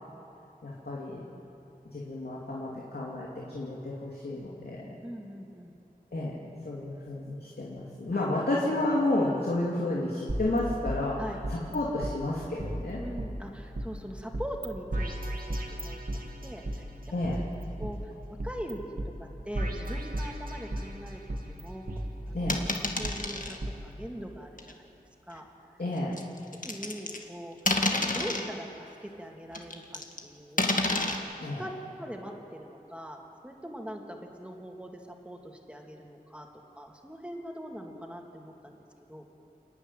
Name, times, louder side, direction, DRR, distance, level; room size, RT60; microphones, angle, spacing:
voice 1, 0.6-1.3 1.9-5.0 6.1-11.2 11.5-13.0 17.1-17.4 22.3-22.6 25.8-26.2 31.4-31.7, left 2 dB, 85° left, -5 dB, 2.8 m, -31 dB
voice 2, 5.0-5.7 8.1-8.7 11.2-11.4 13.0-15.2 15.5-16.0 16.4-16.9 17.8-18.1 18.4-18.8 19.2-21.2 21.5-22.0 22.3-22.5 23.0-23.6 23.8-24.9 25.3-25.5 26.6-27.6 28.1-30.7 31.6-31.7 32.0-36.5 36.7-39.3, equal, 5° right, 1 dB, 2.8 m, -42 dB
sound 1, 10.3-11.8 12.0-12.1 12.6-13.9 14.3-14.7 14.9-16.8 17.2-18.7 19.0-19.1 19.5-20.9 21.3-23.1 23.6-23.7, right 1 dB, 65° right, 2.5 m, -35 dB
sound 2, 22.5-23.6 24.6-24.7 26.2-27.3 27.7-28.5 29.5-30.2 30.6-31.2, left 2 dB, 60° left, 1.9 m, -29 dB
29.5 x 11.5 x 9.3 m, 2.8 s
wide cardioid pair, 55°, 16 cm